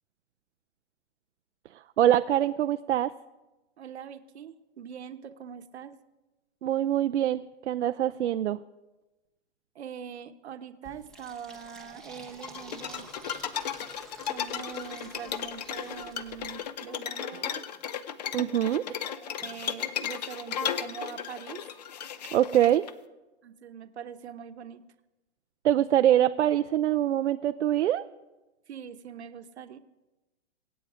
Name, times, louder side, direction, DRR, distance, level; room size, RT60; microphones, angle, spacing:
voice 1, 2.0-3.1 6.6-8.6 18.3-18.8 22.3-22.8 25.6-28.0, right 11 dB, 85° right, 10 dB, 0.6 m, -24 dB
voice 2, 3.8-5.9 9.7-13.1 14.3-17.6 18.9-21.6 23.4-24.8 28.7-29.8, right 8 dB, 70° right, 9 dB, 1.1 m, -43 dB
Fill (with liquid), 10.8-16.5, right 2 dB, ahead, 0.8 m, -50 dB
sound 1, 12.4-22.9, left 9 dB, 35° left, 0.6 m, -35 dB
24.0 x 8.9 x 5.0 m, 1.1 s
hypercardioid pair, 165°, 34 cm